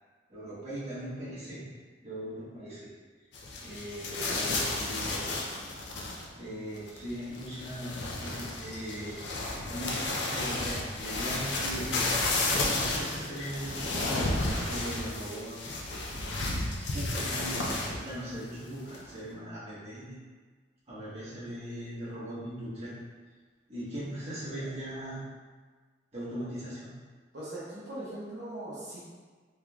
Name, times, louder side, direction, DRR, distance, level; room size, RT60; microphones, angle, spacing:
voice 1, 0.3-1.6 2.0-2.9 3.6-5.4 6.3-9.2 9.7-12.1 12.7-15.6 15.9-16.2 16.9-20.2 20.9-22.9 23.7-25.2 26.1-26.9, equal, 35° right, -11 dB, 1.2 m, -39 dB
sound 1, 3.3-6.5 6.8-18.1 18.4-18.5 18.9-19.1, left 2 dB, 75° left, 0.5 m, -32 dB
voice 2, 27.3-29.0, right 1 dB, 70° right, -9 dB, 1.0 m, -40 dB
3.8 x 3.1 x 2.3 m, 1.5 s
head